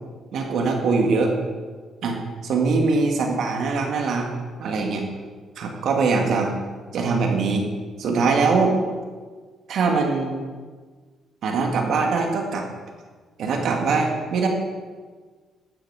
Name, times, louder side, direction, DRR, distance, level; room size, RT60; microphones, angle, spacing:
voice 1, 0.3-1.3 2.0-2.2 2.4-4.3 4.6-5.1 5.6-6.5 6.9-7.7 8.0-8.8 9.7-10.3 11.4-12.6 13.4-14.5, right 4 dB, 70° right, 2 dB, 2.2 m, -22 dB
12.0 x 9.0 x 5.1 m, 1.5 s
cardioid pair, 90°, 0 cm